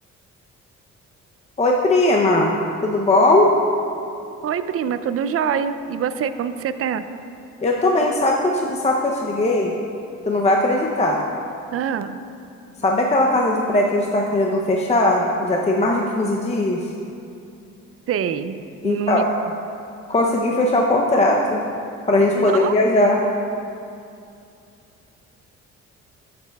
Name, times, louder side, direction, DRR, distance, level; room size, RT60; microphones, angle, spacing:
voice 1, 1.6-2.6 2.8-3.5 7.6-9.7 10.3-11.2 12.8-16.8 18.8-19.3 20.1-21.6 22.1-23.2, left 1 dB, 20° left, -1 dB, 0.6 m, -19 dB
voice 2, 4.4-7.0 11.7-12.2 18.1-18.6 18.8-19.5 22.3-22.7, right 8 dB, 50° right, 11 dB, 0.5 m, -25 dB
13.0 x 6.7 x 2.3 m, 2.6 s
cardioid pair, 90°, 30 cm